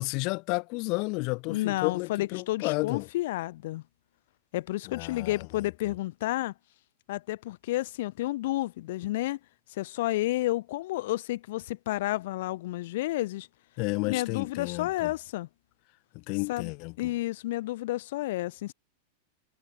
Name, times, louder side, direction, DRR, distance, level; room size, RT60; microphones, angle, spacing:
voice 1, 0.0-3.1 4.9-5.5 13.8-15.1 16.1-17.1, left 30 dB, 50° left, 1.7 m, -32 dB
voice 2, 1.5-3.8 4.5-6.5 7.1-9.4 9.7-13.5 14.1-15.5 16.5-16.7 17.0-18.7, left 17 dB, 65° left, 0.8 m, -31 dB
hypercardioid pair, 120°, 0 cm